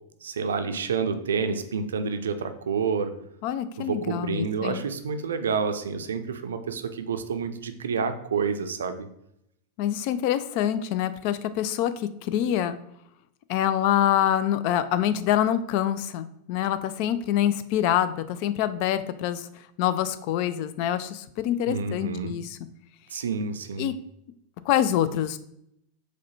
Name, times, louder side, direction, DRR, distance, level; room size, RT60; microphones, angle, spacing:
voice 1, 0.2-3.1 3.8-9.1 21.7-22.3 23.1-23.9, right 5 dB, 75° right, 9 dB, 0.4 m, -29 dB
voice 2, 3.4-4.8 9.8-12.8 13.5-19.5 19.8-22.6 23.8-23.9 24.7-25.4, left 11 dB, 50° left, 13 dB, 0.3 m, -25 dB
4.8 x 2.2 x 4.2 m, 0.77 s
figure-of-eight pair, 90°, 0 cm